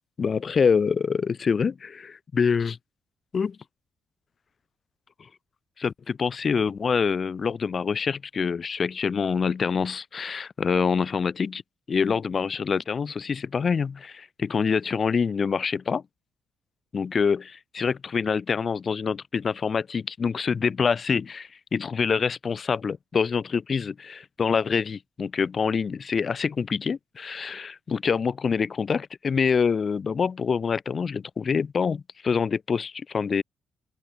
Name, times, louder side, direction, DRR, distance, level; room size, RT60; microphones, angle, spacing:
voice 1, 0.2-2.8 3.3-3.6 5.8-11.6 11.9-16.0 16.9-33.4, left 6 dB, 40° left, 6.2 m, -26 dB
open air
cardioid pair, 90°, 0 cm